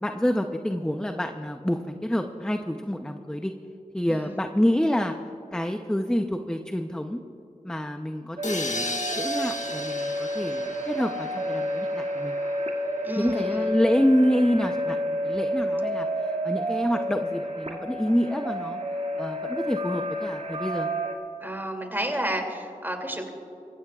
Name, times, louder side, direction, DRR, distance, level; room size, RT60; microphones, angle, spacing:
voice 1, 0.0-3.5 3.9-5.1 5.5-7.2 7.6-12.4 13.2-18.8 19.2-20.9, equal, 5° left, 5 dB, 0.7 m, -27 dB
voice 2, 4.1-4.4 13.0-13.7 21.4-23.3, right 1 dB, 15° right, 2 dB, 2.7 m, -31 dB
sound 1, 8.4-12.2, left 2 dB, 55° left, 1.3 m, -35 dB
sound 2, 8.4-21.1, equal, 50° right, 2.3 m, -30 dB
26.0 x 15.0 x 2.4 m, 2.9 s
cardioid pair, 45°, 15 cm